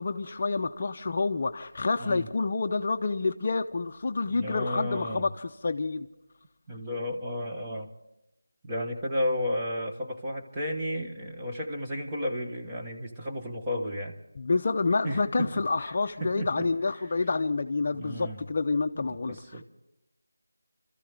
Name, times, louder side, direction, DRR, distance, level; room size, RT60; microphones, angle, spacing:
voice 1, 0.0-6.1 14.4-19.6, left 3 dB, 35° left, 6 dB, 0.6 m, -28 dB
voice 2, 4.2-5.3 6.7-7.9 8.6-14.2 15.0-15.9 16.2-16.7 17.8-18.4 19.1-19.6, left 1 dB, 10° right, -2 dB, 1.1 m, -33 dB
27.5 x 13.5 x 3.4 m, 0.89 s
figure-of-eight pair, 175°, 0 cm